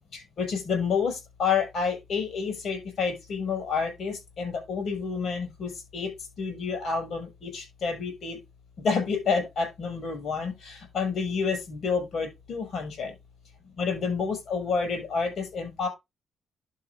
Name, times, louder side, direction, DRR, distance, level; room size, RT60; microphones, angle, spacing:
voice 1, 0.1-6.1 6.4-8.4 8.8-13.1 13.8-15.9, left 5 dB, 65° left, 4 dB, 5.6 m, -29 dB
11.5 x 4.3 x 3.4 m, 0.22 s
supercardioid pair, 60°, 0 cm